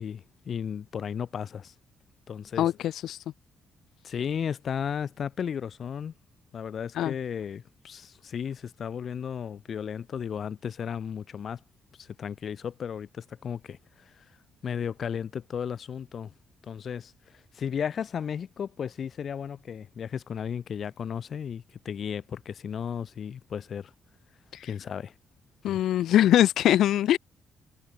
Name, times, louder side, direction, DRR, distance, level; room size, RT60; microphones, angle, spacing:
voice 1, 0.0-1.7 2.3-2.7 4.0-6.1 6.5-11.6 12.0-13.8 14.2-14.3 14.6-16.3 16.6-17.1 17.5-23.9 24.6-25.1 25.7-25.8, left 7 dB, 55° left, 6.7 m, -34 dB
voice 2, 2.6-3.2 7.0-7.1 24.5-24.7 25.6-27.2, left 12 dB, 80° left, 0.8 m, -22 dB
cardioid pair, 90°, 0 cm